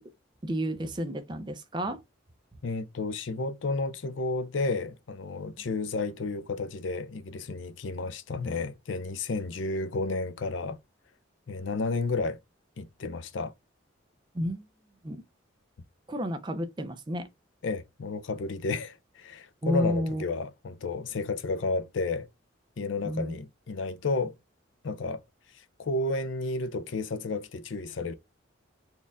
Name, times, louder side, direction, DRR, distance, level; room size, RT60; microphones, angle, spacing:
voice 1, 0.4-2.0 14.3-14.6 15.0-15.2 16.1-17.3 19.6-20.2 23.0-23.4, equal, 25° right, 0.5 m, -31 dB
voice 2, 2.6-10.8 11.5-12.4 12.8-13.5 17.6-22.3 22.8-24.4 24.8-25.2 25.5-28.1, left 3 dB, 70° left, 0.5 m, -32 dB
4.3 x 2.4 x 3.3 m
head